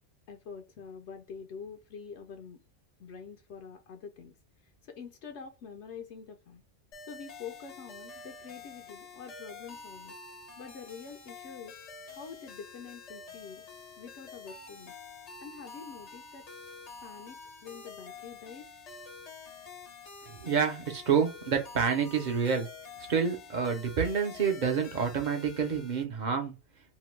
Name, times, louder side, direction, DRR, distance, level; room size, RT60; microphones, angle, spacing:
voice 1, 0.3-2.6 3.0-4.3 4.9-6.6 7.1-10.1 10.6-11.8 12.2-13.6 14.0-14.9 15.4-16.4 17.0-18.7, left 6 dB, 70° left, 0.8 m, -46 dB
sound 1, 6.9-26.0, left 4 dB, 40° left, 0.6 m, -48 dB
voice 2, 20.3-22.7 23.1-26.6, right 6 dB, 45° right, 0.7 m, -28 dB
2.8 x 2.2 x 3.1 m
omnidirectional pair, 1.2 m